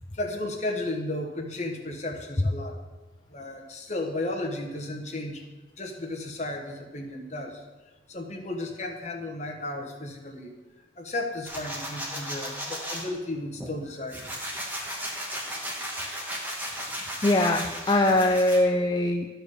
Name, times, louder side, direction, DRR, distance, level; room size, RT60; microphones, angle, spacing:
voice 1, 0.1-2.8 3.3-5.4 5.8-7.6 8.1-10.5 11.0-14.2 16.9-17.0, left 2 dB, 40° left, 2 dB, 1.3 m, -34 dB
sound 1, 11.4-13.0 13.6-18.6, equal, 10° right, 1.4 m, -35 dB
voice 2, 17.2-19.3, left 1 dB, 25° left, 3 dB, 0.4 m, -22 dB
11.5 x 4.9 x 6.6 m, 1.2 s
head